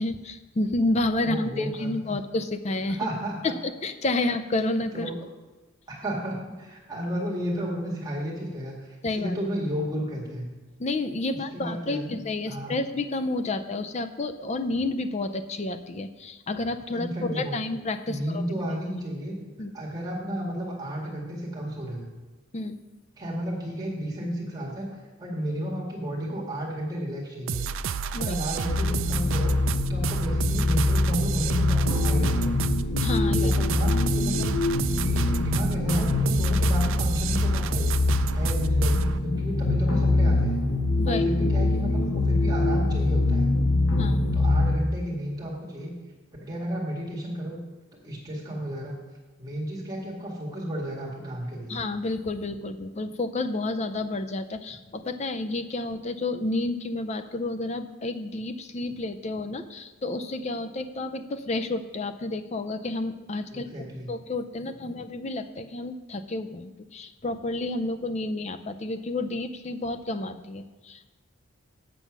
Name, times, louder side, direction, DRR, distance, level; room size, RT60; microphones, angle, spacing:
voice 1, 0.0-3.0 3.4-5.1 9.0-9.3 10.8-17.1 17.3-18.4 19.6-19.7 22.5-22.8 28.1-28.4 33.0-33.4 41.0-41.2 44.0-44.4 51.7-71.0, left 2 dB, 30° left, 9 dB, 0.5 m, -30 dB
voice 2, 1.2-2.2 3.0-3.6 4.9-5.1 5.9-10.5 11.5-12.2 12.5-12.8 16.9-17.5 18.1-19.4 19.7-22.1 23.2-24.9 25.2-27.6 28.1-29.6 29.9-32.6 33.4-34.6 34.9-37.9 38.3-40.6 41.0-43.5 44.3-45.9 46.4-47.6 48.0-48.9 49.4-51.8 63.5-64.1, equal, 20° right, -3 dB, 1.8 m, -32 dB
sound 1, 27.5-39.2, right 6 dB, 65° right, 0.4 m, -31 dB
sound 2, 28.6-44.8, left 2 dB, 70° left, 1.1 m, -24 dB
8.1 x 6.9 x 6.0 m, 1.2 s
head